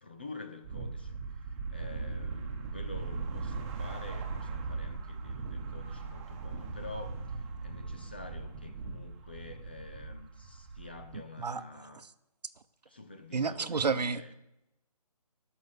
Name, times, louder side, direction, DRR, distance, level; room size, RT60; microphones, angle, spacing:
voice 1, 0.0-12.1 12.9-14.3, left 3 dB, 15° left, 7 dB, 0.4 m, -48 dB
sound 1, 0.6-11.2, right 4 dB, 20° right, 1.2 m, -39 dB
voice 2, 13.3-14.3, right 5 dB, 80° right, 13 dB, 0.9 m, -30 dB
12.5 x 5.9 x 8.3 m, 0.91 s
figure-of-eight pair, 160°, 21 cm